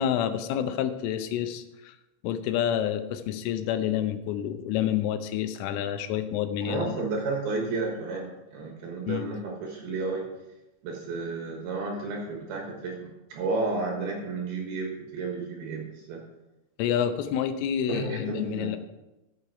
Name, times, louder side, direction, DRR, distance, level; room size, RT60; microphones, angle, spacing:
voice 1, 0.0-2.0 2.2-7.0 9.1-9.3 16.8-18.8, left 10 dB, 85° left, 9 dB, 3.3 m, -28 dB
voice 2, 6.6-10.3 10.8-16.2 17.9-18.7, right 3 dB, 65° right, 0 dB, 2.9 m, -32 dB
12.5 x 7.8 x 4.7 m, 0.98 s
omnidirectional pair, 5.7 m